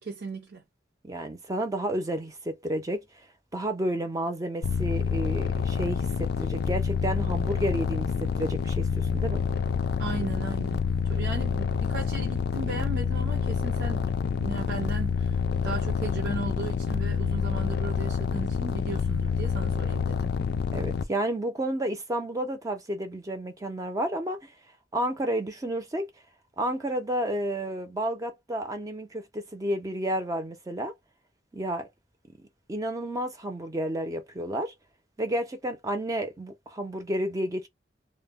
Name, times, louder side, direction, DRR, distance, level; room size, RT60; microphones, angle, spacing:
voice 1, 0.0-0.6 10.0-14.1 14.4-20.3, right 3 dB, 90° right, 0.6 m, -36 dB
voice 2, 1.0-3.3 3.5-9.4 20.7-24.5 24.9-26.1 26.6-30.9 31.5-31.9 32.7-34.7 35.2-37.7, right 1 dB, 20° right, 0.4 m, -31 dB
sound 1, 4.6-21.1, left 6 dB, 65° left, 0.3 m, -28 dB
2.1 x 2.0 x 3.4 m
head